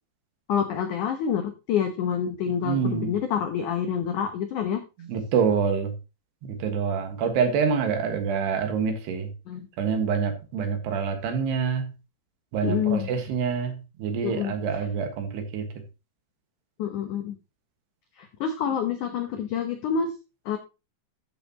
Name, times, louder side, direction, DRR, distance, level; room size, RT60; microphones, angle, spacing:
voice 1, 0.5-4.8 9.5-9.6 12.6-13.1 14.2-14.5 16.8-17.3 18.2-20.1 20.4-20.6, left 7 dB, 90° left, 7 dB, 1.7 m, -27 dB
voice 2, 2.6-3.1 5.0-5.9 6.4-9.3 9.8-11.9 12.5-15.7, right 6 dB, 75° right, 6 dB, 3.6 m, -26 dB
13.0 x 7.4 x 2.9 m, 0.28 s
omnidirectional pair, 5.0 m